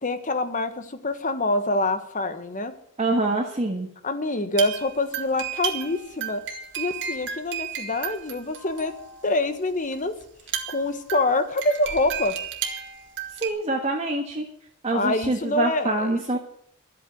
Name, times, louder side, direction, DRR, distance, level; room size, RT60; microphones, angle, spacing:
voice 1, 0.0-2.7 4.0-6.4 6.8-8.9 9.2-10.2 10.7-12.4 14.9-16.4, left 2 dB, 35° left, 10 dB, 1.3 m, -26 dB
voice 2, 3.0-3.9 13.4-14.5 14.8-16.4, right 2 dB, 30° right, 0 dB, 1.5 m, -25 dB
sound 1, 4.5-9.4 9.9-10.0 10.2-13.5, right 8 dB, 55° right, 2.0 m, -33 dB
13.0 x 8.5 x 9.3 m, 0.66 s
head